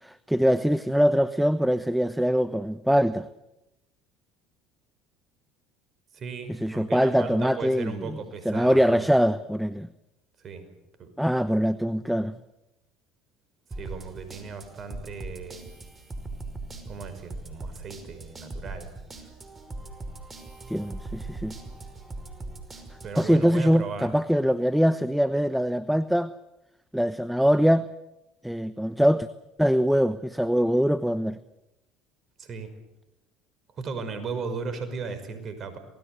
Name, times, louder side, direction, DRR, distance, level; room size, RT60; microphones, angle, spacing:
voice 1, 0.0-3.3 6.6-8.2 8.4-9.9 11.2-12.3 20.7-21.5 23.2-26.3 26.9-27.8 28.4-29.3 29.6-31.4, equal, ahead, 14 dB, 1.0 m, -23 dB
voice 2, 6.1-9.1 10.4-10.7 11.0-11.1 13.7-15.7 16.9-18.9 19.2-19.3 23.0-24.2 32.4-32.7 33.8-35.8, right 5 dB, 45° right, 10 dB, 5.6 m, -36 dB
sound 1, 13.7-23.3, right 2 dB, 25° right, 5.4 m, -40 dB
27.5 x 20.0 x 8.1 m, 0.94 s
hypercardioid pair, 65°, 0 cm